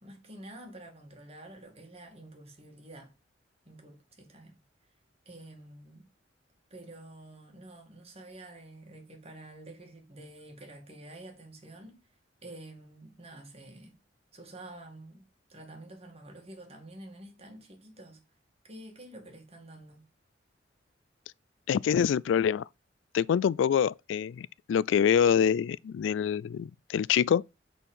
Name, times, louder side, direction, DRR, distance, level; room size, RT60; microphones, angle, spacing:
voice 1, 0.0-3.1 3.6-4.6 5.3-6.1 6.7-12.0 12.4-13.9 14.3-18.2 18.7-20.0, right 1 dB, 35° right, 2.3 m, -49 dB
voice 2, 21.7-22.7 23.1-27.4, left 8 dB, 85° left, 0.3 m, -25 dB
8.1 x 4.4 x 5.5 m
head